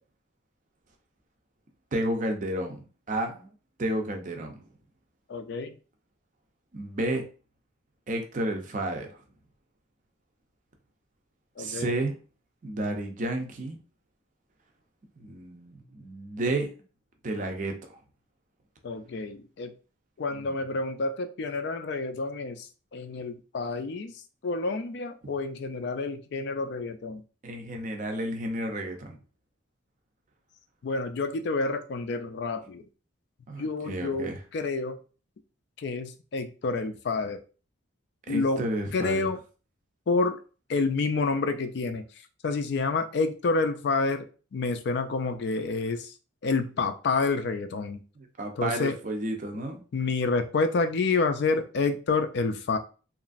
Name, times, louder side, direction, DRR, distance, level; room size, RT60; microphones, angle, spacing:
voice 1, 1.9-3.5 3.8-4.5 6.7-7.2 8.1-9.1 11.6-12.1 12.6-13.8 15.2-16.7 17.2-17.7 20.4-20.6 27.4-29.2 33.5-34.4 38.3-39.3 48.2-49.8, right 1 dB, 40° right, 4 dB, 0.5 m, -31 dB
voice 2, 5.3-5.8 11.6-11.9 18.8-19.7 20.2-24.1 24.4-27.2 30.8-32.8 33.6-35.0 35.8-37.4 38.3-38.6 38.9-39.4 40.1-40.4 40.7-42.0 42.4-44.3 44.5-46.1 46.4-48.0 48.6-49.0 49.9-52.8, left 3 dB, 55° left, 8 dB, 0.3 m, -28 dB
2.9 x 2.4 x 2.4 m, 0.36 s
head